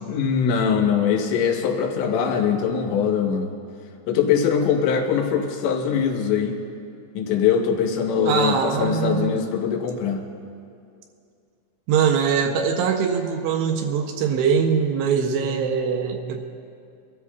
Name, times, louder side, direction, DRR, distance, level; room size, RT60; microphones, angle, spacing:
voice 1, 0.0-3.5 4.1-6.6 7.1-10.2, left 7 dB, 75° left, 3 dB, 3.3 m, -22 dB
voice 2, 8.3-9.4 11.9-16.4, right 6 dB, 75° right, 4 dB, 2.6 m, -22 dB
25.0 x 13.5 x 2.4 m, 2.4 s
omnidirectional pair, 5.4 m